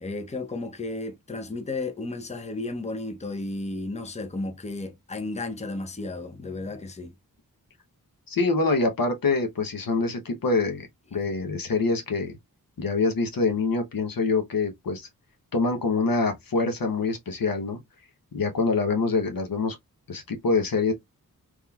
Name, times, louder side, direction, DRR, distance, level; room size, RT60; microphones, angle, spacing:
voice 1, 0.0-7.1, left 2 dB, 20° left, 0.7 m, -33 dB
voice 2, 8.3-12.3 12.8-15.1 15.5-17.8 18.3-19.8 20.1-20.9, left 3 dB, 70° left, 0.9 m, -25 dB
3.6 x 3.0 x 2.3 m
wide cardioid pair, 80°, 36 cm